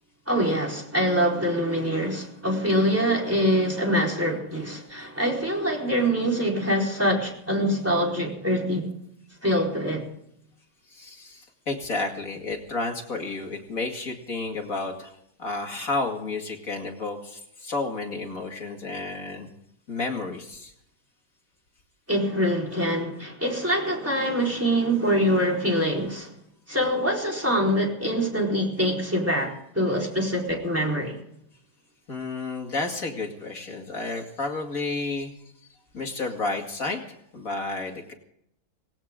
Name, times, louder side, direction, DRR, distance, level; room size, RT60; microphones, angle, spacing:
voice 1, 0.3-8.9 9.4-10.1 22.1-26.3 26.7-31.2, equal, 5° right, 4.3 m, -24 dB
voice 2, 10.9-19.5 19.9-20.7 32.1-35.3 35.9-38.1, left 3 dB, 45° left, 2.6 m, -31 dB
19.0 x 17.5 x 3.7 m
omnidirectional pair, 2.1 m